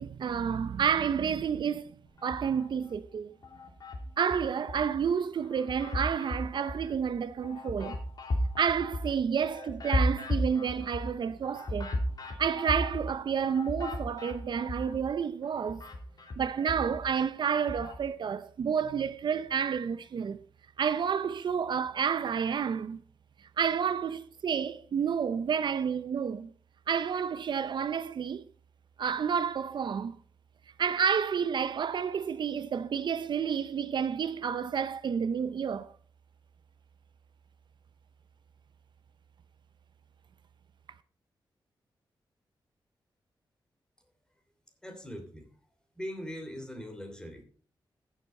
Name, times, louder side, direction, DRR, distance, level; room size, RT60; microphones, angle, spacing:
voice 1, 0.0-1.9 2.2-3.3 4.2-8.0 8.6-11.9 12.4-15.8 16.4-20.4 20.8-23.0 23.6-26.5 26.9-28.4 29.0-30.2 30.8-35.9, right 7 dB, 65° right, 0.6 m, -30 dB
sound 1, 2.2-3.0 3.4-5.0 5.4-15.1 15.4-18.0, left 1 dB, 50° left, 2.9 m, -35 dB
voice 2, 44.8-45.5 46.0-47.4, equal, 10° left, 2.9 m, -41 dB
15.0 x 7.1 x 4.3 m
wide cardioid pair, 125°, 9 cm